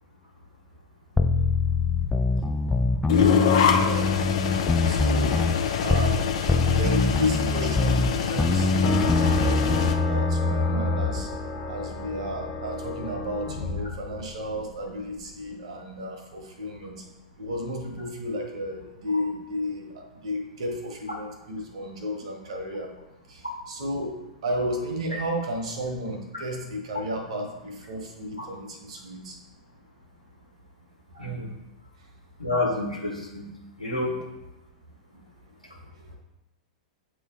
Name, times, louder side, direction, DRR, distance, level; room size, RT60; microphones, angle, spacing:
sound 1, 1.2-6.2 6.5-11.3, left 3 dB, 5° left, 0.3 m, -24 dB
sound 2, 3.1-10.0, left 7 dB, 55° left, 0.6 m, -25 dB
voice 1, 3.7-4.1 4.9-5.3 5.8-6.3 6.7-9.1 10.1-11.3 11.7-17.0 17.4-22.9 23.3-29.4, equal, 60° right, 2 dB, 1.3 m, -33 dB
sound 3, 8.8-14.7, left 2 dB, 30° left, 1.0 m, -31 dB
voice 2, 31.1-31.5 32.4-33.5 33.8-34.2, left 2 dB, 90° left, -4 dB, 1.4 m, -29 dB
8.5 x 3.1 x 3.7 m, 0.98 s
figure-of-eight pair, 100°, 4 cm